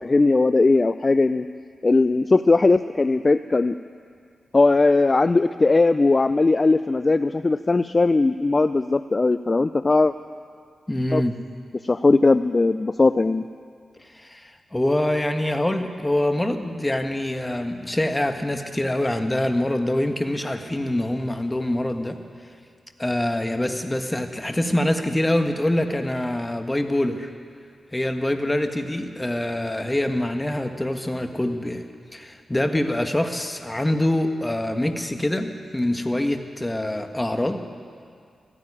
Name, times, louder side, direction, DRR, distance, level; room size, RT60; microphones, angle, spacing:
voice 1, 0.0-1.4 1.8-3.8 4.5-10.1 11.1-11.2 11.7-13.4, left 3 dB, 40° left, 13 dB, 0.4 m, -19 dB
voice 2, 10.9-11.3 14.1-22.2 23.0-27.3 27.9-31.8 32.1-37.6, left 1 dB, 20° left, 6 dB, 1.5 m, -25 dB
15.0 x 9.8 x 9.8 m, 2.3 s
supercardioid pair, 45°, 0 cm